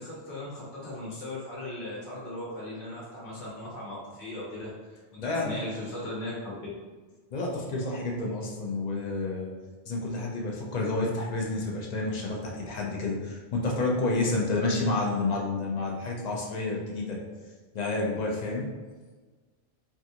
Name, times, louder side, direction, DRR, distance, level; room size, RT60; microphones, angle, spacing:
voice 1, 0.0-6.7, left 1 dB, 75° left, -6 dB, 1.1 m, -38 dB
voice 2, 5.2-5.6 7.3-9.5 9.9-17.2 17.7-18.7, left 2 dB, 50° left, -1 dB, 0.5 m, -29 dB
3.5 x 2.3 x 2.7 m, 1.3 s
omnidirectional pair, 1.1 m